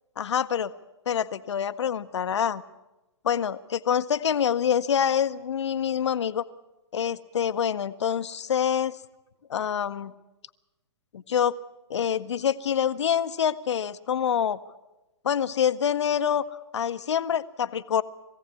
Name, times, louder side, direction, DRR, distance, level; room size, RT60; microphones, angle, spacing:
voice 1, 0.2-0.7 1.1-2.6 3.2-6.4 6.9-9.0 9.5-10.1 11.1-11.6 11.9-14.6 15.2-18.0, left 8 dB, 70° left, 13 dB, 0.9 m, -26 dB
21.5 x 16.0 x 8.3 m, 1.0 s
hypercardioid pair, 125°, 15 cm